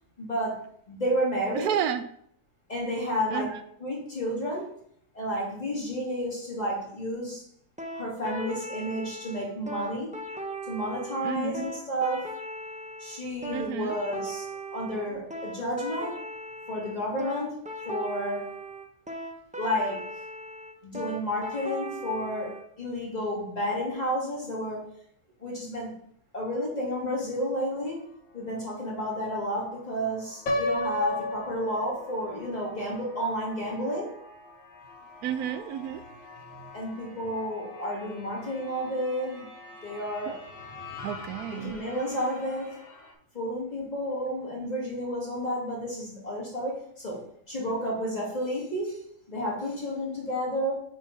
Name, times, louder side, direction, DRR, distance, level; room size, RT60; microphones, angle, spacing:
voice 1, 0.2-1.7 2.7-3.5 3.8-4.7 5.1-7.4 7.9-10.1 10.7-12.3 13.0-16.2 16.7-17.6 17.9-18.5 19.6-20.1 20.8-24.9 25.4-25.9 26.3-28.0 28.3-34.1 36.7-39.5 39.8-40.4 41.5-42.8 43.3-50.8, equal, 30° left, -5 dB, 2.3 m, -31 dB
voice 2, 1.5-2.0 3.3-3.5 11.2-11.6 13.5-14.0 15.1-15.2 35.2-36.1 36.4-36.7 41.0-41.7, right 9 dB, 85° right, 11 dB, 1.1 m, -31 dB
sound 1, 7.8-22.6, right 2 dB, 10° right, 0.4 m, -38 dB
sound 2, 27.1-43.1, left 3 dB, 45° left, 1.7 m, -48 dB
Piano, 30.5-32.4, left 1 dB, 65° left, 1.3 m, -31 dB
9.3 x 3.8 x 4.0 m, 0.66 s
omnidirectional pair, 1.6 m